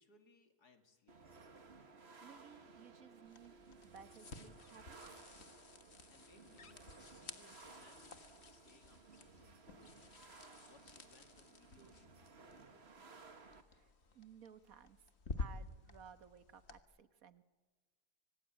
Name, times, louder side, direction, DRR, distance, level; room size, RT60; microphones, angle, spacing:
voice 1, 0.0-1.4 6.1-13.4, left 3 dB, 80° left, 6 dB, 2.9 m, -68 dB
sound 1, 1.1-13.6, right 4 dB, 40° right, 1.9 m, -59 dB
voice 2, 1.9-3.5 3.8-5.2 13.7-15.1 15.4-17.4, right 7 dB, 60° right, 11 dB, 1.7 m, -59 dB
sound 2, 3.2-16.8, left 3 dB, 45° left, 1.7 m, -52 dB
25.5 x 25.0 x 9.1 m, 1.4 s
omnidirectional pair, 1.7 m